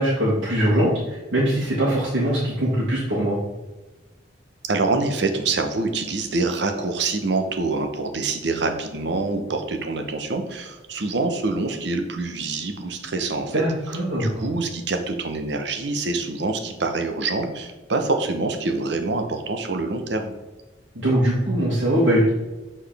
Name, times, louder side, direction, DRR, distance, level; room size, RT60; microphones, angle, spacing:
voice 1, 0.0-3.4 13.5-14.4 21.0-22.3, right 1 dB, 90° right, -8 dB, 1.9 m, -21 dB
voice 2, 4.6-13.6 14.2-20.3, right 3 dB, 65° right, 5 dB, 0.9 m, -25 dB
7.8 x 4.4 x 3.4 m, 1.1 s
head